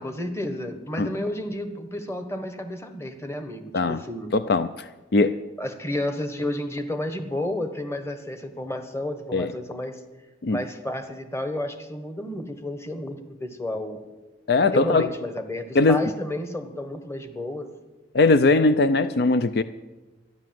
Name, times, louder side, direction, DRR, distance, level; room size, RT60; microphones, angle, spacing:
voice 1, 0.0-4.3 5.6-10.0 10.5-14.0 14.7-17.7, left 1 dB, 15° left, 7 dB, 1.2 m, -31 dB
voice 2, 4.3-4.7 5.1-5.3 9.3-9.5 10.4-10.6 14.5-15.1 15.7-16.0 18.1-19.6, left 3 dB, 60° left, 12 dB, 0.5 m, -20 dB
13.0 x 10.5 x 7.6 m, 1.1 s
head